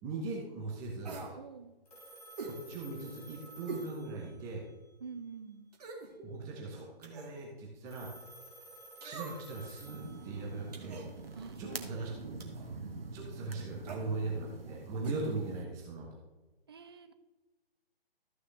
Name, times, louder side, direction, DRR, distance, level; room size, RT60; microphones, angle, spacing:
voice 1, 0.0-1.2 2.4-4.6 6.1-8.1 9.0-11.1 11.6-12.4 13.1-16.2, right 3 dB, 10° right, -1 dB, 0.9 m, -40 dB
sound 1, 1.0-1.4 2.4-2.6 3.7-3.9 4.4-4.5 5.7-6.1 7.0-7.4 9.0-9.6 10.7-11.1 12.4-12.7 13.8-14.1 15.0-15.2 15.5-15.6, right 4 dB, 40° right, 1.7 m, -44 dB
voice 2, 1.3-1.8 5.0-5.6 11.3-12.5 16.7-17.1, right 5 dB, 25° right, 9 dB, 0.5 m, -47 dB
Telephone, 1.9-4.7 7.9-10.7, right 1 dB, 40° left, 3.1 m, -53 dB
sound 2, 9.8-15.7, right 3 dB, 70° right, 1.4 m, -45 dB
13.5 x 6.4 x 3.2 m, 1.1 s
figure-of-eight pair, 145°, 30 cm